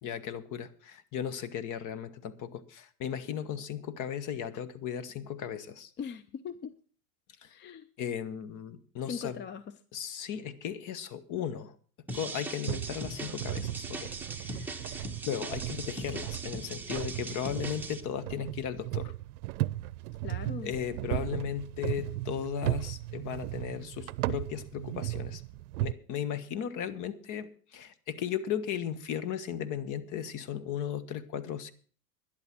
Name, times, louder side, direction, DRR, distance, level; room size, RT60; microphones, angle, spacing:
voice 1, 0.0-5.9 8.0-9.3 9.9-11.7 12.1-19.1 20.6-25.4 25.8-31.7, left 9 dB, 45° left, 14 dB, 1.3 m, -36 dB
voice 2, 6.0-6.8 7.4-7.9 9.1-9.8 20.2-20.7, left 7 dB, 25° left, 15 dB, 0.6 m, -40 dB
sound 1, 12.1-18.0, right 2 dB, 5° right, 1.3 m, -40 dB
Plank Walking, 12.7-25.9, right 17 dB, 75° right, 0.6 m, -36 dB
12.5 x 11.0 x 6.0 m, 0.41 s
supercardioid pair, 115°, 44 cm